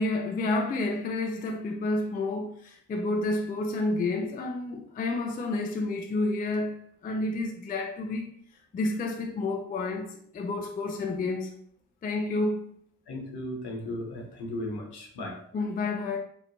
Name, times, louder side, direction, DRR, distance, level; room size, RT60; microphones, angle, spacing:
voice 1, 0.0-6.8 7.0-8.3 8.7-11.5 12.0-12.6 15.5-16.2, left 2 dB, 20° left, 0.4 m, -30 dB
voice 2, 13.1-15.4, left 1 dB, 60° left, 0.9 m, -36 dB
2.9 x 2.0 x 2.6 m
hypercardioid pair, 40°, 45 cm